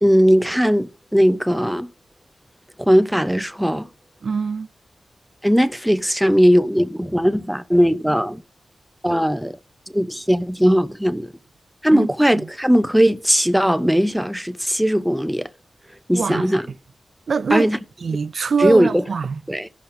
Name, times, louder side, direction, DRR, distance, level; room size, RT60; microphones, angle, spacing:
voice 1, 0.0-1.9 2.8-3.9 5.4-8.4 9.0-9.6 9.9-11.3 11.8-15.5 16.1-16.6 17.5-17.8 18.6-19.0 19.5-19.7, equal, 5° right, 0.5 m, -18 dB
voice 2, 4.2-4.7 11.9-12.1 16.1-16.5 17.3-17.7 18.0-19.4, right 5 dB, 70° right, 0.3 m, -23 dB
16.0 x 5.8 x 2.6 m
cardioid pair, 65°, 0 cm